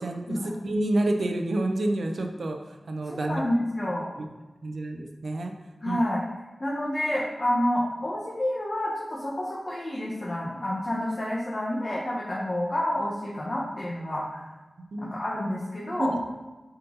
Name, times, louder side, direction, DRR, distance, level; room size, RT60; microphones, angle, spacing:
voice 1, 0.0-3.4 4.2-4.3 4.6-5.5 5.9-6.0 14.9-15.1 16.0-16.2, right 1 dB, 80° right, 3 dB, 0.8 m, -29 dB
voice 2, 3.0-4.1 5.8-6.2 6.6-14.4 15.0-16.2, left 1 dB, 40° left, -5 dB, 1.4 m, -29 dB
7.8 x 4.2 x 4.0 m, 1.1 s
wide cardioid pair, 70°, 0 cm